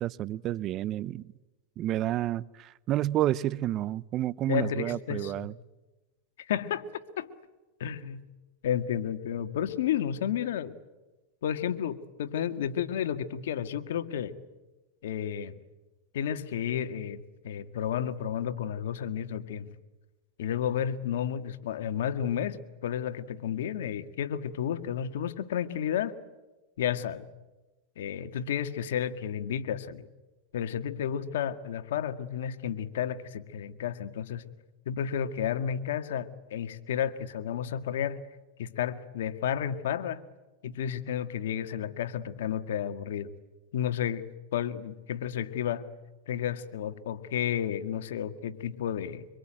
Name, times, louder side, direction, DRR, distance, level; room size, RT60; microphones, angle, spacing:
voice 1, 0.0-1.3 1.8-5.5, right 13 dB, 40° right, 0.8 m, -30 dB
voice 2, 4.5-5.5 6.4-6.9 7.2-7.3 7.8-8.2 8.6-10.8 11.4-14.4 15.0-15.6 16.1-19.7 20.4-26.2 26.8-27.3 28.0-30.1 30.5-34.4 34.9-38.2 38.6-40.2 40.6-43.3 43.7-45.9 46.3-49.3, left 9 dB, 80° left, 1.9 m, -32 dB
25.0 x 25.0 x 9.0 m
supercardioid pair, 125°, 0 cm